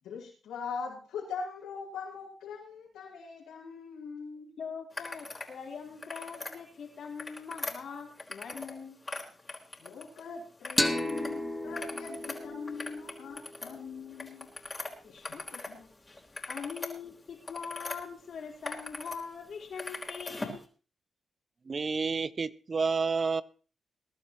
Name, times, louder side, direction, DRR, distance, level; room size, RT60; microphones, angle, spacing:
voice 1, 0.0-4.6 9.8-14.5 15.1-15.2 15.5-15.7, left 5 dB, 85° left, -4 dB, 6.4 m, -41 dB
voice 2, 4.6-9.0 15.0-15.9 16.5-20.7, left 6 dB, 65° left, 1 dB, 4.0 m, -42 dB
sound 1, 4.9-5.5 5.9-6.6 7.0-8.8 9.0-10.2 10.6-11.3 11.6-15.7 16.1-18.0 18.4-19.2 19.5-20.6, left 2 dB, 30° left, 3.9 m, -41 dB
sound 2, 10.8-14.1, left 1 dB, 5° left, 2.0 m, -34 dB
voice 3, 21.6-23.4, right 4 dB, 50° right, 18 dB, 0.6 m, -29 dB
21.5 x 11.5 x 3.0 m, 0.36 s
supercardioid pair, 45°, 0 cm